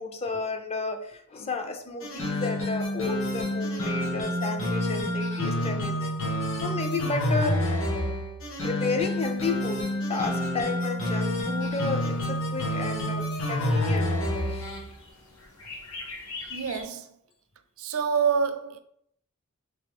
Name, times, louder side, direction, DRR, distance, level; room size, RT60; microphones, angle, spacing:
voice 1, 0.0-6.1 6.5-7.9 8.6-14.1 14.5-14.7, left 3 dB, 30° left, 0.4 m, -32 dB
sound 1, 2.0-14.8, left 1 dB, 65° left, 0.9 m, -28 dB
sound 2, 11.3-16.9, left 3 dB, 85° left, 1.1 m, -45 dB
voice 2, 16.5-17.1 17.8-18.8, right 6 dB, 70° right, 0.4 m, -27 dB
3.3 x 3.3 x 3.4 m
head